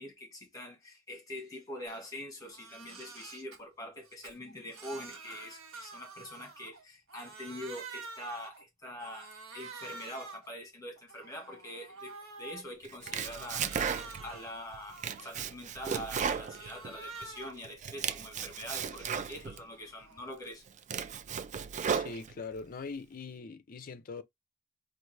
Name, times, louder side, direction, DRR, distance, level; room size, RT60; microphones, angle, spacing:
voice 1, 0.0-13.7 14.2-20.6, left 1 dB, 15° left, 1.5 m, -44 dB
Crying sobbing, 1.9-2.1 2.4-3.6 4.0-6.8 7.1-8.6 9.0-10.5 11.0-12.6 13.0-15.3 15.7-17.7 18.1-20.4, right 4 dB, 65° right, 1.4 m, -48 dB
Domestic sounds home sounds, 12.8-14.4 14.7-17.3 17.6-19.6 20.2-20.3 20.7-22.6, right 7 dB, 35° right, 0.3 m, -35 dB
voice 2, 21.9-24.2, left 4 dB, 40° left, 0.5 m, -42 dB
4.6 x 2.6 x 3.2 m
head